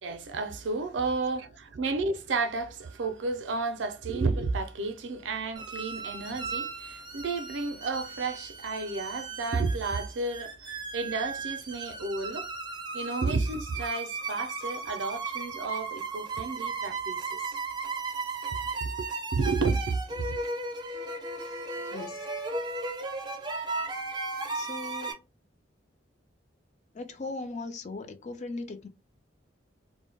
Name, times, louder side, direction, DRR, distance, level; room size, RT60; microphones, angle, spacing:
voice 1, 0.0-12.5 12.9-17.6 18.8-20.4, right 3 dB, 75° right, 0.5 m, -32 dB
sound 1, 5.6-25.1, right 3 dB, 25° right, 0.5 m, -36 dB
voice 2, 24.5-25.2 26.9-28.9, left 3 dB, 40° left, 0.4 m, -38 dB
2.2 x 2.1 x 3.2 m
head